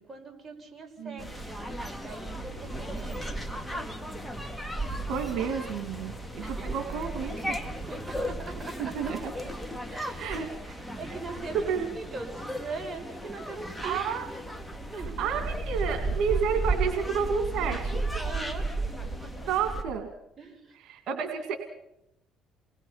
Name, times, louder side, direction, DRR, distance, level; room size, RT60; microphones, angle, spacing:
voice 1, 0.0-1.6 2.0-3.5 6.4-6.8 7.9-9.1 9.9-10.3 11.0-11.7 11.9-14.0 14.9-15.3 18.1-19.5 20.4-20.7, right 4 dB, 25° right, 2 dB, 5.5 m, -41 dB
sound 1, 1.2-19.8, right 2 dB, 5° left, 2.5 m, -34 dB
voice 2, 5.0-7.6 8.8-9.3 10.2-10.8 11.1-11.2 11.5-11.9 13.8-14.3 15.2-18.1 19.5-20.1 20.8-21.6, right 6 dB, 70° right, 6 dB, 2.2 m, -31 dB
29.0 x 20.5 x 5.7 m, 0.85 s
supercardioid pair, 90°, 0 cm